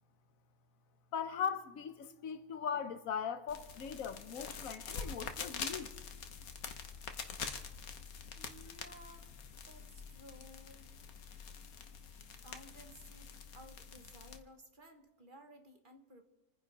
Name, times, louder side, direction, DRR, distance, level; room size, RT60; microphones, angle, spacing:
voice 1, 1.1-5.9, left 7 dB, 70° left, 1.3 m, -39 dB
sound 1, 3.5-14.4, left 6 dB, 85° left, 1.6 m, -46 dB
voice 2, 8.4-10.9 12.4-16.2, equal, 35° right, 1.5 m, -57 dB
28.0 x 10.0 x 4.1 m
omnidirectional pair, 1.5 m